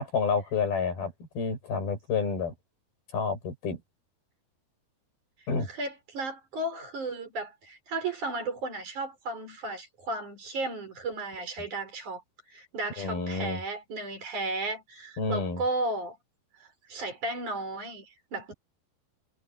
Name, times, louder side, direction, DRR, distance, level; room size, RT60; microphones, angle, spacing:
voice 1, 0.0-2.5 3.1-3.8 5.5-5.7 13.0-13.6 15.2-15.6, left 5 dB, 80° left, 9.3 m, -29 dB
voice 2, 5.7-12.2 12.5-16.2 16.5-18.5, right 2 dB, 55° right, 6.9 m, -34 dB
omnidirectional pair, 4.3 m